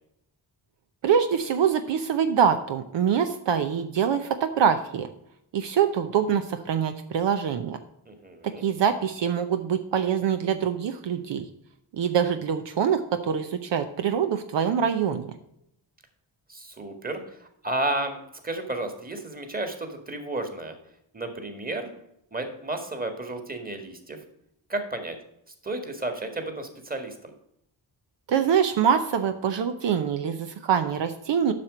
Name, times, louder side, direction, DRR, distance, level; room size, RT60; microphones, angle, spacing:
voice 1, 1.0-5.1 5.5-7.8 8.6-11.4 11.9-15.3 28.3-31.5, right 8 dB, 70° right, 8 dB, 0.8 m, -24 dB
voice 2, 8.1-8.6 16.5-20.8 21.1-21.9 22.3-24.2 24.7-25.2 25.6-27.3, right 2 dB, 20° right, 6 dB, 1.8 m, -32 dB
7.6 x 6.0 x 5.0 m, 0.78 s
cardioid pair, 80°, 46 cm